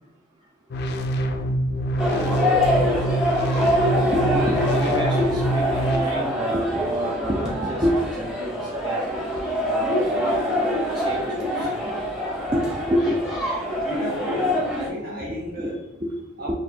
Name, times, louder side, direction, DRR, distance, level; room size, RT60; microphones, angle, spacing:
sound 1, 0.7-6.0, right 1 dB, 55° left, 0.3 m, -25 dB
sound 2, 2.0-14.9, left 1 dB, 5° right, 1.0 m, -25 dB
voice 1, 4.0-9.0 9.6-12.1 12.5-13.2 15.2-15.7 16.0-16.2, equal, 25° right, -2 dB, 0.3 m, -28 dB
voice 2, 13.8-15.8 16.4-16.6, equal, 50° right, -4 dB, 1.1 m, -33 dB
4.1 x 2.4 x 2.7 m, 0.93 s
head